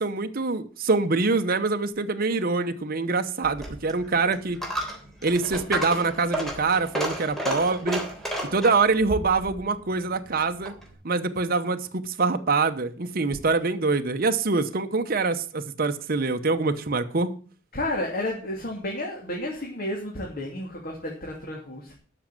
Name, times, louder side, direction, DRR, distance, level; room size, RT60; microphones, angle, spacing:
voice 1, 0.0-4.6 5.2-8.0 8.5-10.7 11.0-17.3, right 3 dB, 50° right, 0.9 m, -25 dB
Coin (dropping), 3.4-10.9, right 1 dB, ahead, 3.4 m, -33 dB
voice 2, 17.7-21.9, left 1 dB, 50° left, 2.7 m, -31 dB
12.5 x 6.2 x 7.6 m
head